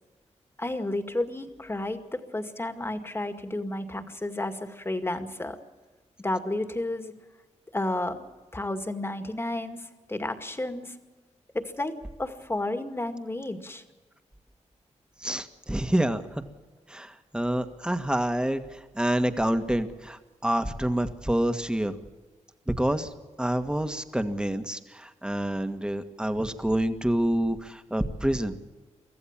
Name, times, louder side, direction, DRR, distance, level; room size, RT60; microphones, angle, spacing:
voice 1, 0.6-5.6 6.2-7.1 7.7-11.0 11.5-13.8, left 1 dB, 20° left, 8 dB, 2.1 m, -32 dB
voice 2, 15.2-16.4 16.9-22.0 22.7-23.1 23.4-28.6, right 1 dB, 5° right, 8 dB, 1.7 m, -27 dB
24.5 x 15.0 x 7.4 m, 1.3 s
cardioid pair, 80°, 12 cm